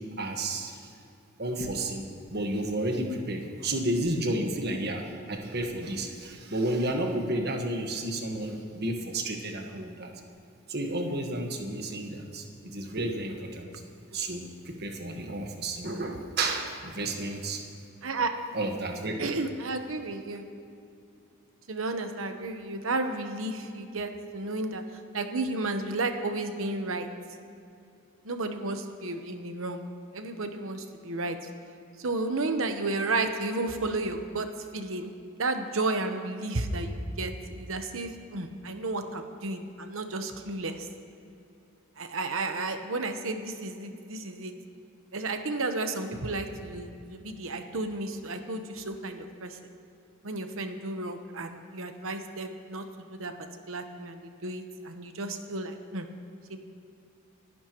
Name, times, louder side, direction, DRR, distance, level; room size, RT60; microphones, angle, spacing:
voice 1, 0.2-0.8 1.4-2.0 2.3-10.1 10.7-13.7 14.1-17.6 18.5-19.1, right 1 dB, 50° right, 3 dB, 1.5 m, -31 dB
voice 2, 18.0-18.3 19.2-20.4 21.7-27.1 28.2-29.8 30.1-31.5 32.0-34.5 34.7-40.9 42.0-44.5 45.1-49.6 50.2-56.1 56.5-56.6, right 2 dB, 70° right, 6 dB, 1.1 m, -32 dB
27.5 x 11.0 x 3.1 m, 2.6 s
head